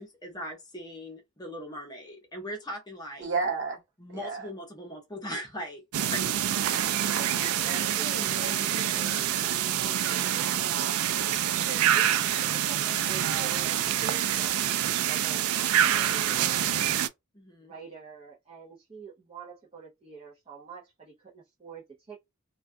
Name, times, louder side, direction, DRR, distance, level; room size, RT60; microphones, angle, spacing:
voice 1, 0.0-3.3 4.0-6.8 8.9-9.0 17.3-17.7, equal, 20° left, 0.7 m, -40 dB
voice 2, 3.2-3.8 4.1-4.5 7.3-9.3 10.0-11.7, right 4 dB, 60° right, 1.2 m, -36 dB
sound 1, 5.9-17.1, right 10 dB, 80° right, 0.3 m, -26 dB
voice 3, 7.0-9.3 9.7-11.0 11.5-17.0 17.6-22.2, right 6 dB, 25° right, 0.6 m, -45 dB
2.3 x 2.2 x 2.5 m
head